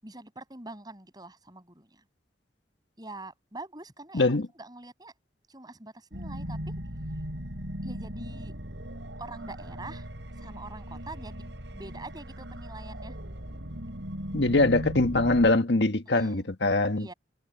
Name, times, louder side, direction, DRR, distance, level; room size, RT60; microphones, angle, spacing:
voice 1, 0.0-2.0 3.0-5.1 5.5-6.8 7.8-8.5 9.2-10.1 10.4-13.2 16.1-16.5 17.0-17.1, right 2 dB, 25° right, 8.0 m, -44 dB
voice 2, 4.1-4.5 14.3-17.1, left 2 dB, 75° left, 1.6 m, -23 dB
sound 1, 6.1-15.5, equal, 85° right, 6.0 m, -38 dB
head